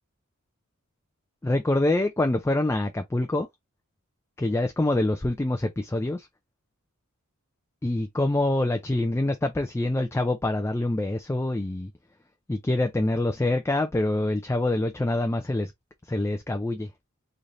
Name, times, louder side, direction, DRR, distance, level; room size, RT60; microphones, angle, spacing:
voice 1, 1.4-3.5 4.4-6.3 7.8-11.9 12.5-15.7 16.1-16.9, left 2 dB, 10° left, 0.3 m, -25 dB
3.9 x 3.2 x 2.5 m
head